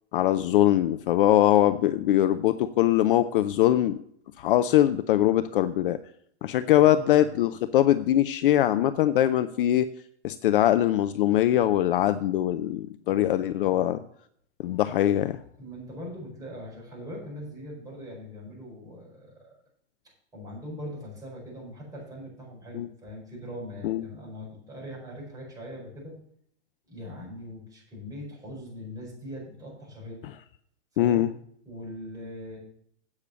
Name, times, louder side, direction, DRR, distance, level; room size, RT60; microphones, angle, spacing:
voice 1, 0.1-4.0 4.4-6.0 6.4-9.9 10.2-14.0 14.6-15.4 22.7-22.9 23.8-24.0 31.0-31.3, left 12 dB, 50° left, 12 dB, 0.5 m, -22 dB
voice 2, 6.8-7.3 13.0-13.3 13.7-13.9 15.6-19.5 20.3-26.1 26.9-30.2 30.9-31.3 31.6-32.6, equal, 10° right, -3 dB, 5.0 m, -41 dB
8.5 x 6.5 x 7.4 m, 0.66 s
hypercardioid pair, 150°, 35 cm